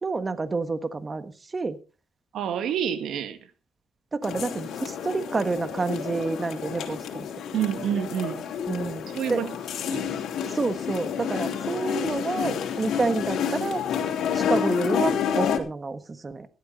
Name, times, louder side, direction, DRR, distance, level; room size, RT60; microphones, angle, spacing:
voice 1, 0.0-1.8 4.1-7.3 8.7-9.4 10.5-13.8 14.3-16.5, right 3 dB, 30° right, 1.4 m, -29 dB
voice 2, 2.3-3.4 7.5-8.4 9.1-9.5 9.9-10.0, right 9 dB, 75° right, 1.9 m, -28 dB
sound 1, 4.2-15.6, left 8 dB, 75° left, 3.3 m, -29 dB
16.5 x 12.5 x 4.1 m
cardioid pair, 90°, 0 cm